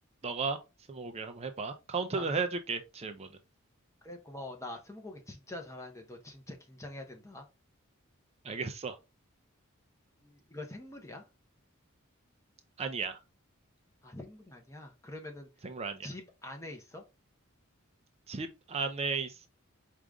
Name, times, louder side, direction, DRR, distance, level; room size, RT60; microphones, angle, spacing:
voice 1, 0.2-0.6 0.9-3.3 8.4-9.0 12.8-13.2 15.6-16.1 18.3-19.5, right 4 dB, 30° right, 0.5 m, -34 dB
voice 2, 4.0-7.5 10.2-11.2 14.0-15.5 16.0-17.0, left 1 dB, 15° left, 0.9 m, -45 dB
4.9 x 2.5 x 3.5 m
head